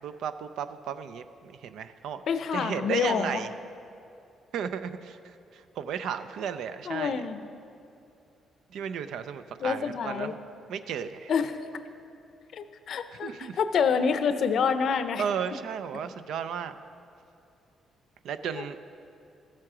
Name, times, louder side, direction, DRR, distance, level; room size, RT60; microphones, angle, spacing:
voice 1, 0.0-2.2 2.5-3.5 4.5-7.2 8.7-10.4 10.7-11.3 13.2-13.6 15.2-16.8 18.2-18.8, right 7 dB, 80° right, 11 dB, 0.5 m, -34 dB
voice 2, 2.3-3.4 6.9-7.4 9.6-10.4 11.3-11.6 12.5-15.2 18.5-18.7, left 6 dB, 65° left, 10 dB, 0.6 m, -27 dB
14.0 x 7.5 x 4.9 m, 2.6 s
cardioid pair, 90°, 0 cm